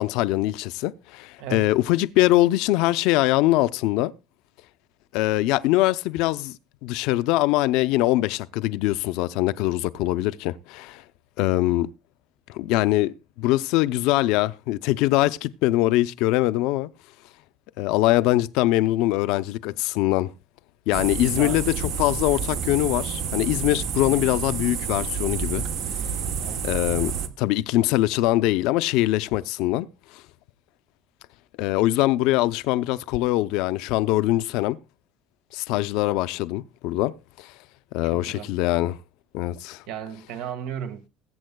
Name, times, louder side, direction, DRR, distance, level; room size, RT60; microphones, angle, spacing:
voice 1, 0.0-4.1 5.1-11.0 11.4-11.9 12.5-16.9 17.8-20.3 20.9-25.6 26.6-27.1 27.4-29.9 30.1-30.2 31.6-34.8 35.5-37.5 37.9-39.0 39.3-39.8, left 16 dB, 65° left, 0.5 m, -23 dB
voice 2, 1.4-1.7 21.2-21.6 26.4-26.6 38.0-38.5 39.9-41.1, right 9 dB, 70° right, 1.6 m, -35 dB
sound 1, 20.9-27.3, right 7 dB, 45° right, 1.1 m, -29 dB
21.0 x 8.6 x 2.3 m
cardioid pair, 175°, 0 cm